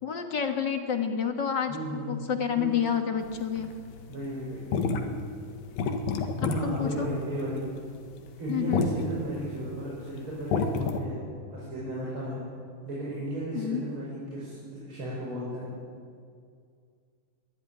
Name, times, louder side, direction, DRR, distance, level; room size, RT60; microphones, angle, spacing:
voice 1, 0.0-3.7 6.4-7.1 8.5-8.8 13.5-13.8, left 8 dB, 50° left, 6 dB, 1.3 m, -29 dB
voice 2, 1.7-2.1 2.6-2.7 4.1-4.8 6.4-7.6 8.4-12.4 12.8-15.7, right 1 dB, 35° right, -5 dB, 6.2 m, -34 dB
sound 1, 3.2-11.0, left 4 dB, 80° left, 3.4 m, -31 dB
23.0 x 16.0 x 9.7 m, 2.2 s
omnidirectional pair, 4.0 m